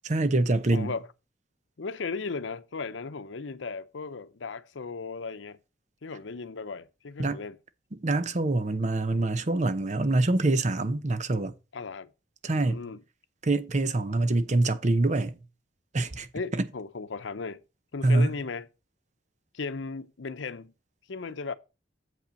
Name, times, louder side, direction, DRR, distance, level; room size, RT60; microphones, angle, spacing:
voice 1, 0.1-0.9 7.2-7.4 8.0-11.5 12.4-12.9 13.4-15.4 15.9-16.3 16.5-16.7 18.0-18.3, right 2 dB, 40° right, 0.7 m, -25 dB
voice 2, 0.7-1.1 1.8-5.6 6.0-7.6 11.7-12.1 12.5-13.0 16.3-17.6 17.9-18.7 19.5-20.7 21.1-21.5, left 4 dB, 85° left, 0.7 m, -36 dB
7.7 x 5.5 x 5.2 m
head